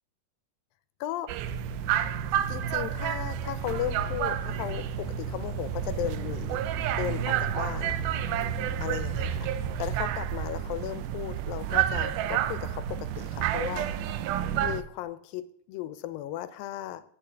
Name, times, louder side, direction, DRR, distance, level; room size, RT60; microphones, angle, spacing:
voice 1, 1.0-1.3 2.5-6.6 6.9-8.0 8.8-9.5 9.8-13.9 14.6-17.0, left 12 dB, 80° left, 13 dB, 2.3 m, -36 dB
sound 1, 1.3-14.8, right 10 dB, 80° right, 1.8 m, -30 dB
sound 2, 1.4-10.0, right 4 dB, 65° right, 1.8 m, -38 dB
8.9 x 6.4 x 8.3 m, 0.65 s
omnidirectional pair, 4.2 m